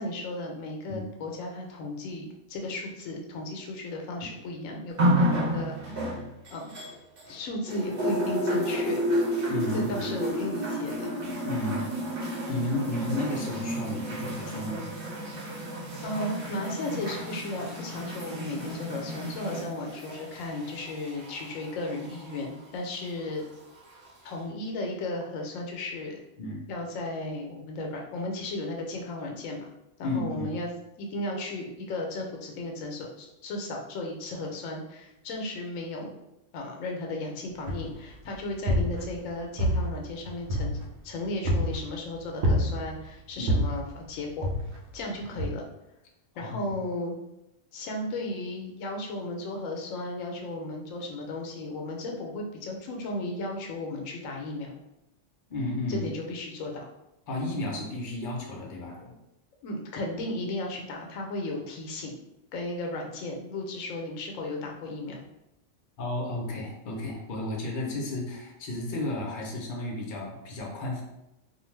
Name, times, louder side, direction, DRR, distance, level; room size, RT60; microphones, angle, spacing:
voice 1, 0.0-6.2 6.5-6.7 7.3-9.0 9.7-11.1 16.0-23.4 24.2-26.2 26.7-29.7 30.0-30.7 31.0-36.2 36.5-40.8 41.0-44.5 44.9-45.6 46.4-47.2 47.7-54.8 55.9-56.9 59.6-62.1 62.5-65.3, left 2 dB, 85° left, 1 dB, 1.0 m, -35 dB
sound 1, 5.0-7.3 7.7-22.4 23.3-23.4, equal, 50° right, 0.9 m, -31 dB
voice 2, 9.5-9.9 11.4-11.9 12.5-14.8 26.4-26.6 30.0-30.5 43.4-43.6 45.2-45.3 46.3-46.7 55.5-56.1 57.3-59.2 66.0-71.0, left 1 dB, 50° left, -2 dB, 0.7 m, -32 dB
sound 2, 37.7-38.1 38.5-39.3 39.6-41.0 41.4-41.9 42.4-43.0 43.5-43.9 44.4-44.9 45.4-45.5, equal, 85° right, 1.0 m, -27 dB
2.5 x 2.3 x 3.1 m, 0.88 s
omnidirectional pair, 1.3 m